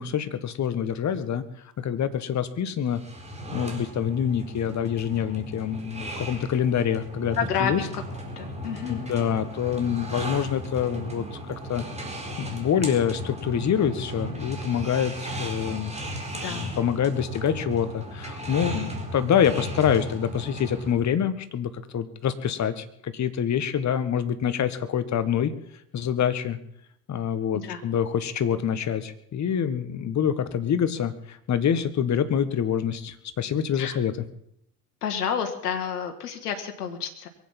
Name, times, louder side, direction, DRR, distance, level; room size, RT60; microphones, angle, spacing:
voice 1, 0.0-1.4 1.8-3.0 3.5-7.8 8.9-11.8 12.4-15.9 16.5-25.5 25.9-26.6 27.1-34.1, left 8 dB, 35° left, 12 dB, 1.7 m, -26 dB
sound 1, 2.8-20.9, right 1 dB, 15° right, 4.5 m, -36 dB
voice 2, 7.3-8.0 8.4-9.1 16.3-16.7 27.5-27.8 33.7-34.0 35.0-37.3, left 7 dB, 80° left, 5 dB, 1.9 m, -30 dB
22.5 x 8.6 x 7.3 m, 0.73 s
hypercardioid pair, 75°, 46 cm